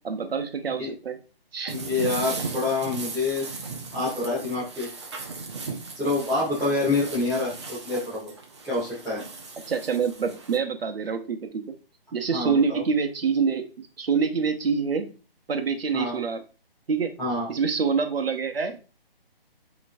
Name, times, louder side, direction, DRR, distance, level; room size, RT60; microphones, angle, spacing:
voice 1, 0.0-1.2 1.5-1.7 9.7-11.7 12.1-15.1 15.5-16.4 16.9-17.1 17.5-18.8, right 5 dB, 75° right, 6 dB, 0.9 m, -26 dB
voice 2, 1.7-3.4 3.9-4.9 5.9-8.3 8.6-9.2 12.3-12.8 15.9-16.2 17.2-17.5, left 2 dB, ahead, -16 dB, 1.0 m, -27 dB
sound 1, 1.7-10.6, right 4 dB, 30° right, 0.5 m, -37 dB
5.3 x 3.1 x 2.6 m, 0.34 s
hypercardioid pair, 160°, 30 cm